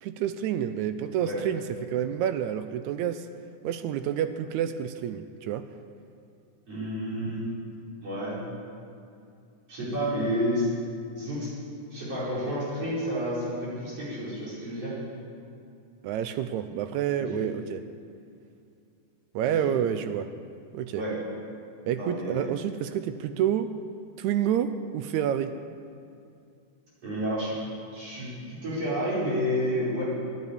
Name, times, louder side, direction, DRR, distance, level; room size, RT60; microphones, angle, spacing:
voice 1, 0.0-3.3 3.6-5.7 16.0-17.8 19.4-20.3 20.7-21.0 21.9-23.7 24.2-25.6, right 10 dB, 80° right, 10 dB, 1.7 m, -29 dB
voice 2, 6.7-7.4 8.0-8.4 9.7-10.7 11.2-11.5 11.9-15.0 17.2-17.4 19.4-19.7 20.9-21.2 22.0-22.5 27.0-27.6 27.9-30.0, equal, 50° right, -10 dB, 5.8 m, -30 dB
11.5 x 9.9 x 9.6 m, 2.5 s
omnidirectional pair, 3.7 m